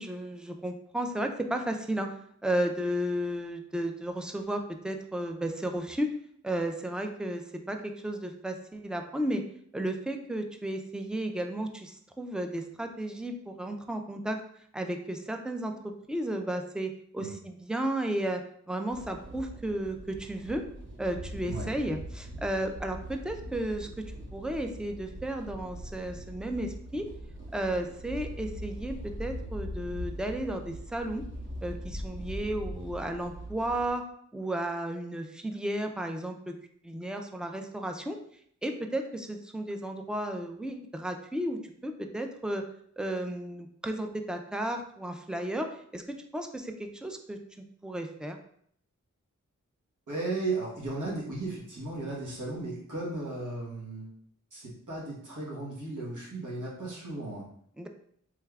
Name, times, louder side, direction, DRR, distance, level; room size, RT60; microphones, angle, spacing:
voice 1, 0.0-2.1 2.4-6.1 6.4-9.4 9.7-14.4 14.7-15.7 16.1-18.4 18.7-20.6 21.0-27.1 27.5-31.2 31.6-34.0 34.3-36.5 36.8-38.2 38.6-42.6 43.0-47.4 47.8-48.4 57.8-57.9, right 1 dB, 5° right, 4 dB, 0.3 m, -33 dB
sound 1, 18.9-33.9, equal, 40° right, 0.9 m, -41 dB
voice 2, 50.1-54.1 54.5-57.5, right 2 dB, 80° right, -5 dB, 1.2 m, -35 dB
3.4 x 3.3 x 2.3 m, 0.65 s
wide cardioid pair, 70°, 30 cm